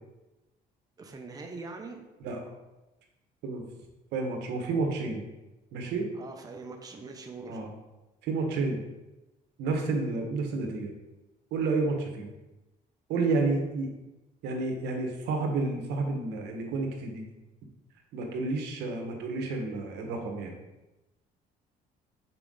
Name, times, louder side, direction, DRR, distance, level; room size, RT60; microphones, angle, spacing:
voice 1, 1.0-2.0 5.8-7.7, right 3 dB, 20° right, 3 dB, 0.7 m, -43 dB
voice 2, 4.1-5.2 5.7-6.1 7.5-7.7 8.2-8.8 9.6-10.9 11.5-12.3 13.1-13.9 14.4-17.2 18.1-20.5, right 3 dB, 80° right, 2 dB, 1.3 m, -30 dB
5.8 x 4.6 x 3.9 m, 1.0 s
cardioid pair, 110°, 17 cm